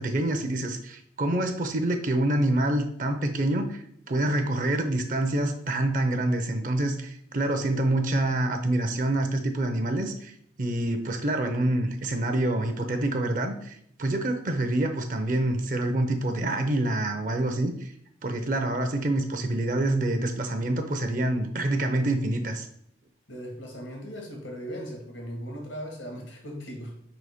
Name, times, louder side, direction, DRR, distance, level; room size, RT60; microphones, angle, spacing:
voice 1, 0.0-17.9 18.2-22.7, right 1 dB, 45° right, 7 dB, 0.6 m, -27 dB
voice 2, 23.3-27.0, equal, 90° left, 0 dB, 1.7 m, -38 dB
4.9 x 4.0 x 4.9 m, 0.69 s
head